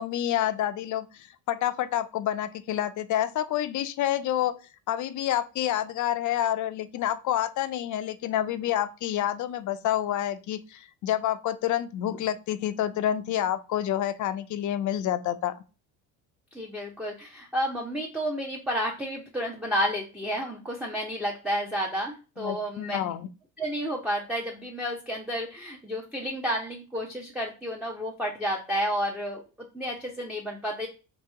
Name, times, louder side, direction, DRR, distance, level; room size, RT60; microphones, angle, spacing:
voice 1, 0.0-4.6 4.9-15.6 22.4-23.3, left 11 dB, 45° left, 12 dB, 0.5 m, -28 dB
voice 2, 16.5-23.0 23.6-29.4 29.7-30.9, equal, 5° right, -1 dB, 0.6 m, -31 dB
2.9 x 2.7 x 3.4 m, 0.33 s
hypercardioid pair, 70°, 43 cm